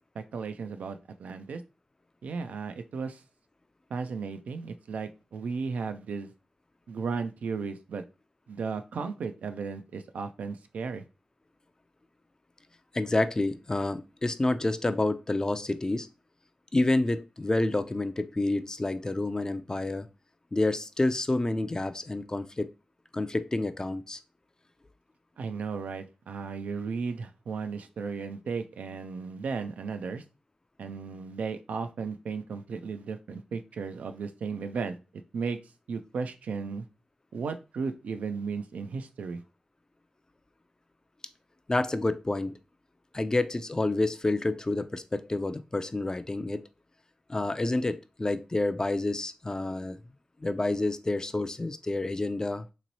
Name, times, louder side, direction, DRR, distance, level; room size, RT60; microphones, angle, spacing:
voice 1, 0.2-1.6 2.2-3.2 3.9-6.3 6.9-8.0 8.5-11.0 25.4-30.2 30.8-34.9 35.3-35.6 35.9-36.8 37.3-39.4, right 5 dB, 90° right, 0.3 m, -35 dB
voice 2, 12.9-16.1 16.7-20.1 20.5-22.7 23.1-24.2 41.7-42.5 43.1-46.6 47.3-50.0 50.4-52.7, left 2 dB, 30° left, 0.4 m, -28 dB
3.0 x 2.9 x 2.6 m
cardioid pair, 40°, 2 cm